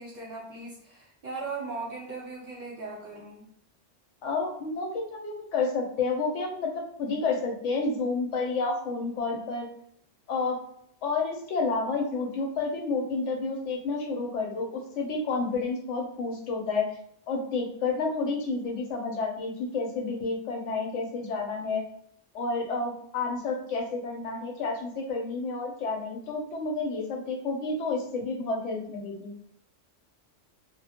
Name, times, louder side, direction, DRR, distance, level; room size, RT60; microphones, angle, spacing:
voice 1, 0.0-3.4, right 3 dB, 45° right, -3 dB, 0.6 m, -38 dB
voice 2, 4.2-9.7 10.3-10.6 11.0-16.9 17.3-21.8 22.3-29.3, left 3 dB, 90° left, 1 dB, 0.9 m, -30 dB
2.2 x 2.0 x 2.8 m, 0.67 s
omnidirectional pair, 1.2 m